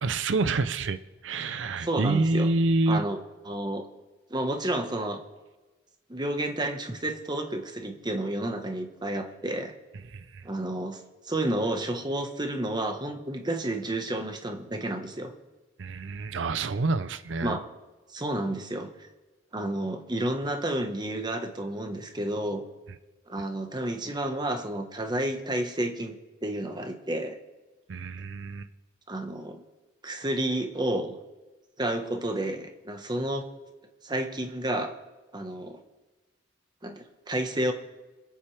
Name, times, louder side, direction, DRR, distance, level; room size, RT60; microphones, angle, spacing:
voice 1, 0.0-3.0 10.1-10.5 15.8-17.6 23.4-23.5 27.9-28.7, right 3 dB, 70° right, 12 dB, 0.6 m, -27 dB
voice 2, 1.8-2.5 2.9-3.2 3.4-3.9 4.3-5.2 6.1-9.7 10.4-11.0 11.2-15.3 17.4-17.6 18.1-18.9 19.5-22.6 23.3-26.1 26.4-27.4 29.1-29.6 30.0-31.2 31.8-33.5 34.0-34.9 35.3-35.8 36.8-37.7, right 1 dB, 20° right, 5 dB, 1.2 m, -30 dB
26.5 x 8.9 x 3.3 m, 1.2 s
head